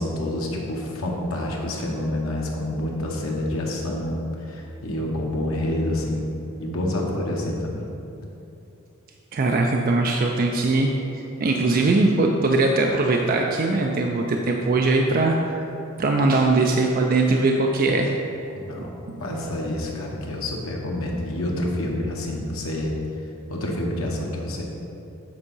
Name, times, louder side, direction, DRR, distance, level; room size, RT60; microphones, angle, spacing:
voice 1, 0.0-4.2 4.5-6.2 6.6-7.8 18.5-18.9 19.2-22.9 23.5-24.6, left 1 dB, 90° left, -2 dB, 1.1 m, -28 dB
voice 2, 9.3-15.7 16.0-18.1 19.1-19.5, right 2 dB, 45° right, 1 dB, 0.4 m, -21 dB
8.0 x 3.6 x 5.4 m, 2.8 s
head